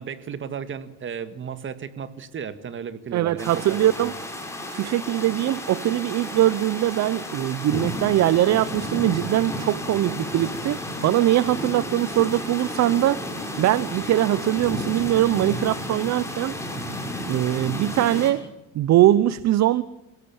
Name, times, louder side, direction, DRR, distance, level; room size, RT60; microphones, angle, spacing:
voice 1, 0.0-4.1, right 7 dB, 35° right, 12 dB, 2.0 m, -34 dB
voice 2, 3.1-4.1 4.7-13.2 13.6-16.5 17.3-18.4 18.7-19.8, right 13 dB, 55° right, 17 dB, 0.9 m, -21 dB
sound 1, 3.4-18.3, left 1 dB, 10° left, 5.9 m, -32 dB
30.0 x 17.0 x 7.3 m, 0.93 s
cardioid pair, 125°, 33 cm